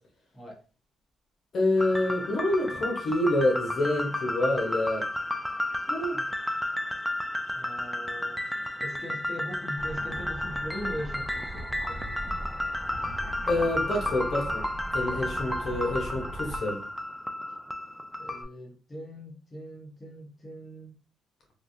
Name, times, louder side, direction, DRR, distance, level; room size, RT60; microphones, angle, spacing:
voice 1, 1.5-5.1 5.9-6.2 13.5-14.7 14.9-16.8, left 1 dB, 55° left, 1.0 m, -27 dB
sound 1, 1.8-18.4, left 1 dB, 5° left, 0.4 m, -33 dB
voice 2, 7.5-8.4 8.8-12.0 18.2-21.0, equal, 25° left, 1.0 m, -41 dB
sound 2, 9.8-16.6, right 1 dB, 30° right, 1.3 m, -40 dB
3.2 x 2.5 x 2.6 m
cardioid pair, 90°, 0 cm